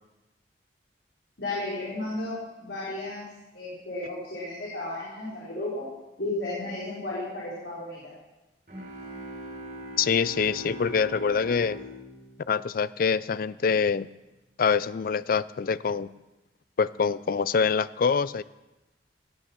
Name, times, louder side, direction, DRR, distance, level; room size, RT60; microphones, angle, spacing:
voice 1, 1.4-3.3 3.5-5.8 6.2-8.1, left 2 dB, 85° left, -8 dB, 4.3 m, -33 dB
sound 1, 8.7-13.3, equal, 55° right, 4.3 m, -41 dB
voice 2, 10.0-11.8 12.5-14.1 14.6-16.1 16.8-18.4, left 6 dB, 55° left, 17 dB, 0.4 m, -25 dB
17.5 x 8.8 x 5.9 m, 1.1 s
head